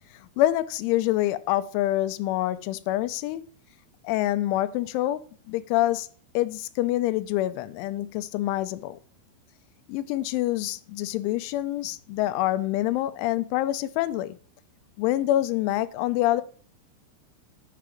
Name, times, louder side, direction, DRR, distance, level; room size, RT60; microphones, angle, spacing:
voice 1, 0.4-3.4 4.0-5.2 5.5-6.1 6.3-9.0 9.9-14.4 15.0-16.4, left 15 dB, 85° left, 3.0 m, -26 dB
10.0 x 5.7 x 5.0 m
omnidirectional pair, 5.7 m